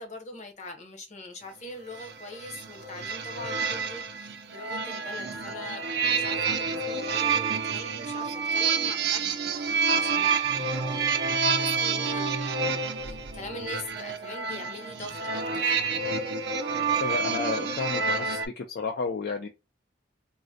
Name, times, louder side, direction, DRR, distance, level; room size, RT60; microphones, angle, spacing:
voice 1, 0.0-15.7, left 2 dB, 40° left, 0.8 m, -43 dB
sound 1, 1.9-18.5, right 5 dB, 60° right, 0.5 m, -28 dB
voice 2, 17.0-19.5, left 4 dB, 60° left, 0.4 m, -32 dB
3.7 x 2.1 x 2.6 m
head